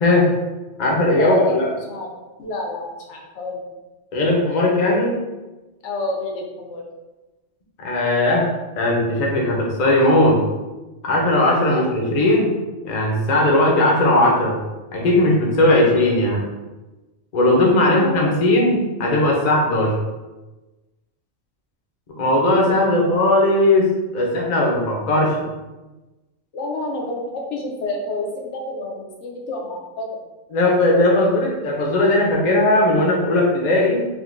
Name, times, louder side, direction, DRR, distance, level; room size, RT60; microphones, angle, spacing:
voice 1, 0.0-0.3 0.8-1.7 4.1-5.2 7.8-8.5 8.8-10.4 11.0-12.5 12.8-14.6 14.9-16.4 17.3-19.9 22.2-25.4 30.5-34.0, left 1 dB, 45° left, -1 dB, 0.7 m, -18 dB
voice 2, 1.1-1.6 1.9-2.1 2.4-3.6 5.8-6.8 11.7-11.8 17.8-18.4 26.5-30.1, left 2 dB, 80° left, 0 dB, 0.9 m, -29 dB
3.6 x 2.6 x 2.5 m, 1.1 s
omnidirectional pair, 1.2 m